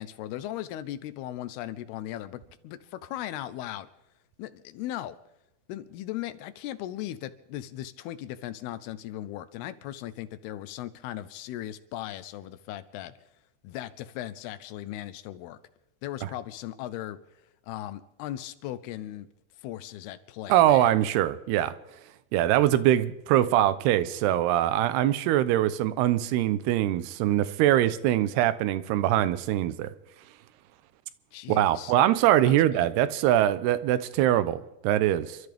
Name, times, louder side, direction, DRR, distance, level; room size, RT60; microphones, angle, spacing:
voice 1, 0.0-3.9 4.4-5.2 5.7-13.1 13.6-15.6 16.0-17.2 17.7-19.3 19.6-20.9 31.3-31.9 32.4-32.9, left 13 dB, 80° left, 13 dB, 2.7 m, -38 dB
voice 2, 20.5-21.7 22.3-29.9 31.5-35.4, right 12 dB, 80° right, 14 dB, 2.7 m, -23 dB
29.0 x 13.0 x 3.5 m, 0.93 s
omnidirectional pair, 4.7 m